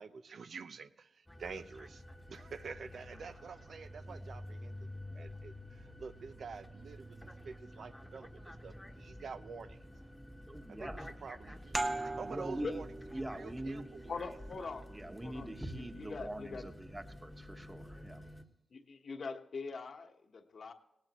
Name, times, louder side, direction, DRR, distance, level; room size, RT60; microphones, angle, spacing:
voice 1, 0.0-2.0 2.3-10.1 10.8-12.9 13.3-14.1, right 5 dB, 70° right, 10 dB, 0.7 m, -48 dB
sound 1, 1.3-18.4, left 1 dB, 5° left, 1.2 m, -50 dB
voice 2, 10.5-11.0 12.3-12.8 13.1-13.9 14.9-18.3, right 1 dB, 15° right, 6 dB, 1.4 m, -43 dB
sound 2, 11.7-17.0, right 2 dB, 35° right, 1.0 m, -42 dB
voice 3, 14.1-14.8 15.2-15.5 16.0-16.7 18.7-20.7, left 4 dB, 60° left, 4 dB, 1.2 m, -42 dB
18.0 x 17.5 x 3.1 m, 0.89 s
cardioid pair, 85°, 0 cm